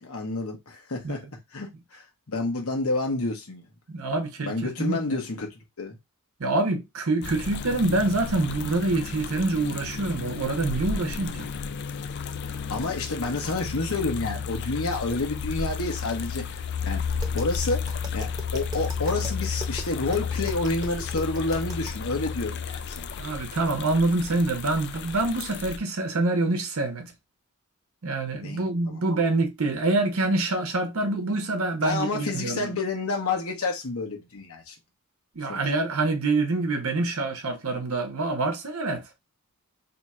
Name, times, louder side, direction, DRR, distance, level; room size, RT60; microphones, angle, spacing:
voice 1, 0.0-1.3 1.5-2.0 2.3-3.6 4.4-5.5 5.8-6.0 12.7-23.0 28.4-29.0 31.8-34.7 35.5-35.6, left 3 dB, 70° left, 1.0 m, -29 dB
voice 2, 3.9-5.0 6.4-11.5 23.2-27.1 28.0-32.7 35.4-39.0, right 2 dB, 70° right, 0.8 m, -26 dB
sound 1, 7.2-25.8, left 6 dB, 50° left, 0.4 m, -33 dB
Tap, 17.1-22.1, equal, 20° right, 0.8 m, -40 dB
2.8 x 2.4 x 4.1 m
head